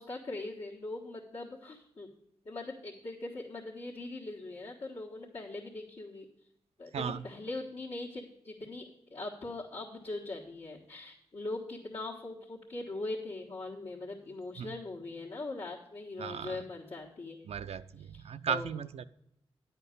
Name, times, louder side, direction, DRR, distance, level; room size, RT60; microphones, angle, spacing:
voice 1, 0.0-2.1 2.4-6.3 6.8-17.5 18.1-18.7, left 2 dB, 65° left, -6 dB, 1.5 m, -41 dB
voice 2, 6.9-7.2 14.6-14.7 16.2-16.6 17.4-19.0, right 7 dB, 70° right, 12 dB, 0.4 m, -36 dB
9.9 x 4.4 x 6.8 m, 0.77 s
supercardioid pair, 40°, 11 cm